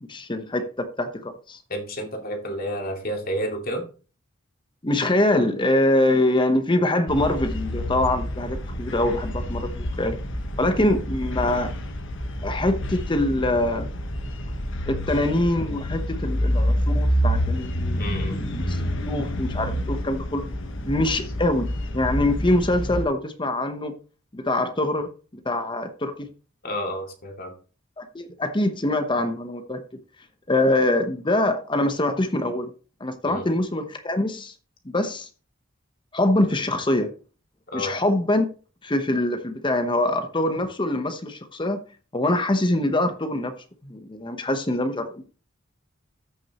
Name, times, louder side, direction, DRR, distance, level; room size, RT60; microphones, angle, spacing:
voice 1, 0.1-1.6 4.8-10.2 10.6-11.7 12.4-13.9 14.9-20.4 20.8-21.7 21.9-23.9 24.3-25.1 25.4-26.3 28.0-29.8 30.5-32.7 33.0-34.5 34.8-35.3 36.1-37.1 37.7-38.5 38.8-41.8 42.1-43.5 43.8-45.2, left 1 dB, 25° left, 0.9 m, -24 dB
voice 2, 1.7-3.8 18.0-18.4 26.6-27.5 33.2-33.5 37.7-37.9, equal, 45° left, 2.5 m, -30 dB
sound 1, 7.1-23.1, equal, 65° left, 1.2 m, -28 dB
14.0 x 6.3 x 2.9 m
head